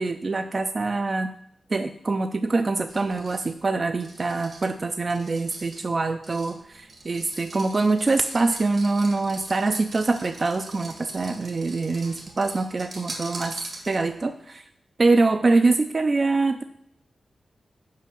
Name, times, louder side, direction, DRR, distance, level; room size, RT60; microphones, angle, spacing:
voice 1, 0.0-1.3 1.7-13.5 13.9-14.6 15.0-16.6, right 3 dB, 50° right, 8 dB, 0.4 m, -24 dB
sound 1, 2.9-14.3, right 2 dB, 70° right, 1.8 m, -43 dB
5.6 x 5.0 x 6.3 m, 0.76 s
supercardioid pair, 40°, 0 cm